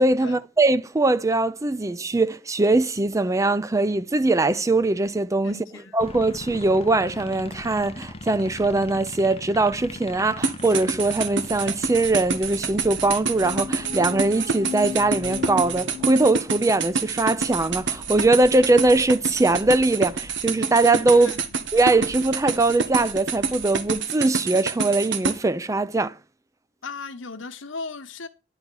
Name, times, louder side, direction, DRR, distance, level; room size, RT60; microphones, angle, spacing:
voice 1, 0.0-5.6 5.9-21.3 21.7-26.1, right 2 dB, 15° right, 0.4 m, -21 dB
voice 2, 5.4-6.0 21.1-21.6 26.8-28.3, left 4 dB, 75° left, 1.2 m, -37 dB
sound 1, 6.0-24.0, left 2 dB, 30° left, 0.7 m, -42 dB
sound 2, 10.4-25.3, right 5 dB, 60° right, 1.2 m, -27 dB
sound 3, 13.4-17.1, left 7 dB, 35° right, 2.2 m, -36 dB
10.5 x 4.2 x 7.7 m
head